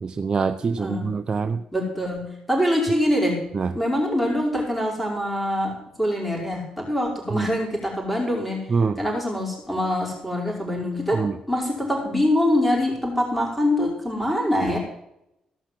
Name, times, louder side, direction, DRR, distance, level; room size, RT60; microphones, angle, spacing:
voice 1, 0.0-1.6 3.5-3.7 7.3-7.5 8.7-9.0 11.1-11.4, right 5 dB, 40° right, 8 dB, 0.7 m, -24 dB
voice 2, 0.8-1.1 1.7-3.5 3.7-8.6 9.0-14.8, left 1 dB, 5° left, -2 dB, 5.1 m, -24 dB
16.5 x 5.8 x 7.5 m, 0.82 s
supercardioid pair, 55°, 2 cm